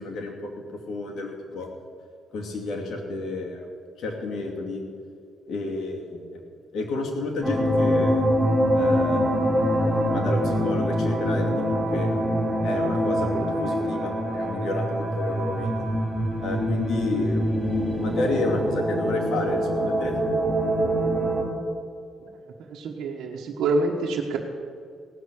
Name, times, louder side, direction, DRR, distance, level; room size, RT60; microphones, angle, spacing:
voice 1, 0.0-1.7 2.3-3.7 4.0-4.8 5.5-6.4 6.7-8.2 8.7-9.6 10.1-12.2 12.6-15.9 16.4-17.5 18.0-20.2, left 2 dB, 65° left, 0 dB, 2.5 m, -31 dB
sound 1, 7.4-21.4, equal, ahead, 4.6 m, -24 dB
voice 2, 22.6-24.4, right 3 dB, 75° right, -3 dB, 1.3 m, -26 dB
17.5 x 6.4 x 8.6 m, 2.3 s
cardioid pair, 90°, 0 cm